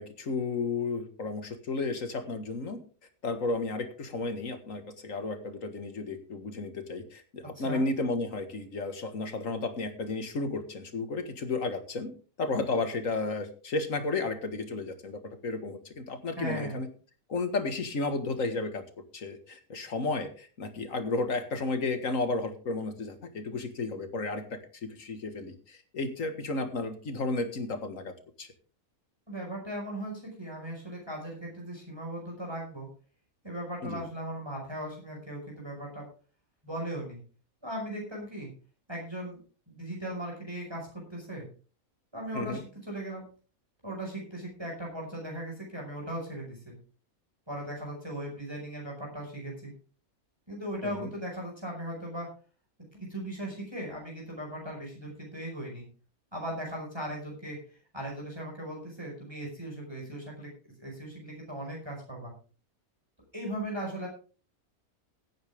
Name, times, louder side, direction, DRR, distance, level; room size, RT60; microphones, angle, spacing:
voice 1, 0.0-2.8 3.2-12.1 12.4-16.9 17.3-18.8 19.1-28.1 28.4-28.5 33.8-34.0 42.3-42.6 50.8-51.1, left 3 dB, 65° left, 7 dB, 2.1 m, -33 dB
voice 2, 16.4-16.8 29.3-32.9 33.4-36.1 36.6-37.2 37.6-38.5 38.9-39.4 39.7-41.4 42.1-43.3 43.8-46.7 47.5-49.7 50.5-52.3 52.9-55.8 56.3-57.6 57.9-62.3 63.3-64.1, right 1 dB, 15° right, -1 dB, 5.4 m, -38 dB
17.0 x 9.3 x 3.6 m, 0.38 s
omnidirectional pair, 1.5 m